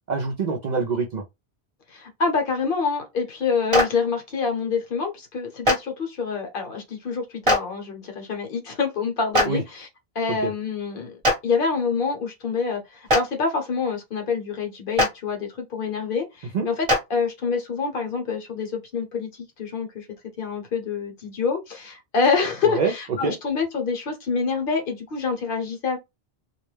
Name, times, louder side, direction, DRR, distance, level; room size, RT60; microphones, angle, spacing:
voice 1, 0.1-1.2 9.4-9.6 10.3-10.5 16.5-16.7 22.6-22.9 23.2-23.3, right 4 dB, 55° right, 0.5 m, -25 dB
voice 2, 1.9-9.9 10.1-11.2 11.4-20.1 20.4-26.0, left 5 dB, 60° left, 1.0 m, -26 dB
Clapping, 3.7-3.8 5.6-5.7 7.4-7.6 9.3-9.5 11.2-11.3 13.1-13.2 15.0-15.1 16.9-17.0, left 1 dB, 35° right, 0.9 m, -18 dB
2.3 x 2.1 x 3.1 m
omnidirectional pair, 1.1 m